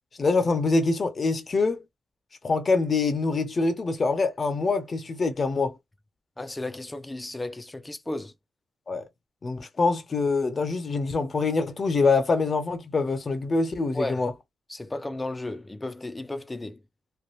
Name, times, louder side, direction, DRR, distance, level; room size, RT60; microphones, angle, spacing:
voice 1, 0.2-1.8 2.4-5.7 8.9-9.0 9.4-14.3, left 3 dB, 40° left, 1.0 m, -25 dB
voice 2, 6.4-8.3 13.9-14.2 14.7-16.8, left 2 dB, 20° left, 0.8 m, -34 dB
3.3 x 2.5 x 2.6 m
cardioid pair, 80°, 0 cm